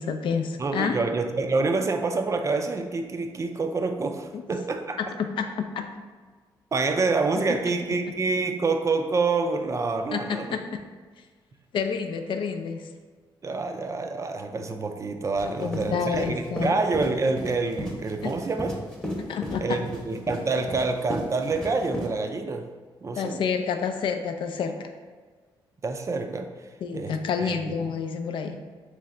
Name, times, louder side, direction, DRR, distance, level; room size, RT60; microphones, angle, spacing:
voice 1, 0.0-1.0 4.3-4.4 5.0-5.8 10.1-10.6 11.7-12.9 15.6-16.7 18.2-18.3 19.3-19.8 23.2-24.9 26.8-28.6, left 6 dB, 70° left, 6 dB, 0.4 m, -29 dB
voice 2, 0.6-5.0 6.7-10.6 13.4-18.7 19.6-22.7 23.0-23.4 25.8-26.5 26.9-27.8, right 3 dB, 35° right, 5 dB, 0.4 m, -27 dB
sound 1, 15.3-22.1, equal, 5° left, 0.8 m, -35 dB
3.3 x 3.1 x 3.7 m, 1.5 s
cardioid pair, 75°, 9 cm